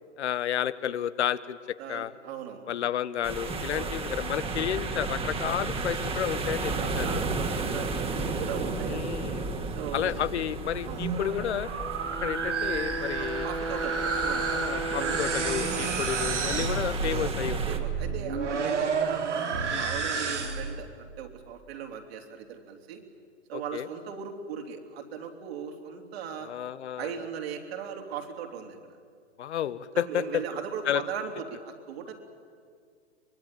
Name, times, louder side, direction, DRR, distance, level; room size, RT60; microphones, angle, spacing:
voice 1, 0.2-1.6 1.9-2.1 2.7-7.2 8.9-9.5 9.9-11.7 12.2-13.5 14.5-17.6 19.7-19.9 23.5-23.9 26.4-27.1 29.4-30.4 30.9-31.0, left 10 dB, 70° left, 15 dB, 1.0 m, -31 dB
voice 2, 1.8-2.8 3.7-3.9 6.7-9.1 9.7-10.2 10.8-11.0 13.2-14.5 15.0-15.2 17.6-23.0 23.5-26.5 27.0-29.0 29.9-32.1, right 7 dB, 60° right, 3 dB, 3.5 m, -38 dB
sound 1, 3.2-17.8, right 3 dB, 15° right, 1.9 m, -33 dB
sound 2, 10.8-20.8, right 5 dB, 85° right, 3.0 m, -31 dB
Brass instrument, 11.8-16.0, right 2 dB, 5° left, 2.1 m, -35 dB
24.0 x 20.5 x 9.1 m, 2.1 s
hypercardioid pair, 115°, 35 cm